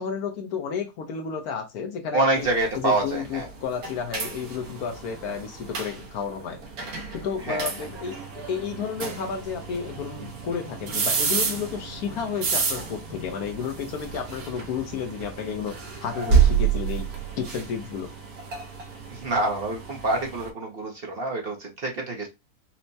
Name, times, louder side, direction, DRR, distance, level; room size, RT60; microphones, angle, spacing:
voice 1, 0.0-2.5 2.7-6.6 7.1-8.1 8.5-15.8 16.0-17.0 17.4-18.1, left 6 dB, 75° left, 5 dB, 1.2 m, -32 dB
voice 2, 2.1-3.5 7.4-7.7 19.1-22.3, right 2 dB, 50° right, 1 dB, 0.8 m, -26 dB
sound 1, 2.4-20.5, right 6 dB, 70° right, 1.4 m, -30 dB
4.4 x 2.0 x 2.6 m, 0.23 s
omnidirectional pair, 1.6 m